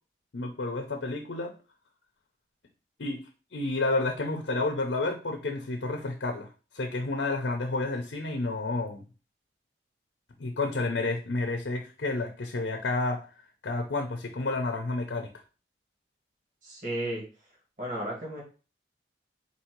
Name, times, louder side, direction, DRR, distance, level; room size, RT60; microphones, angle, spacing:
voice 1, 0.3-1.5 3.0-3.2 3.5-9.0 10.4-13.3 13.6-15.3, left 2 dB, 75° left, 4 dB, 0.6 m, -30 dB
voice 2, 16.6-17.2 17.8-18.4, right 1 dB, 45° right, -3 dB, 1.5 m, -33 dB
4.2 x 2.7 x 4.4 m, 0.34 s
head